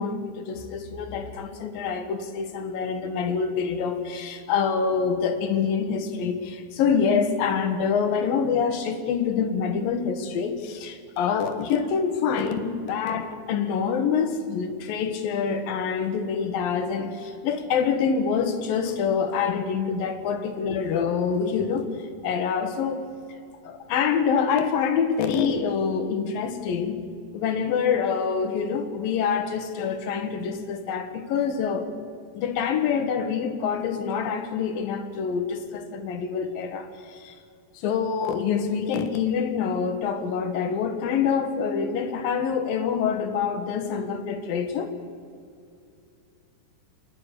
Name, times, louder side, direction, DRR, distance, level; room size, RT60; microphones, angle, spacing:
voice 1, 0.0-23.1 23.6-27.0 27.3-31.9 32.3-37.3 37.7-44.9, left 6 dB, 90° left, 8 dB, 3.2 m, -26 dB
28.5 x 10.5 x 9.9 m, 2.5 s
omnidirectional pair, 3.9 m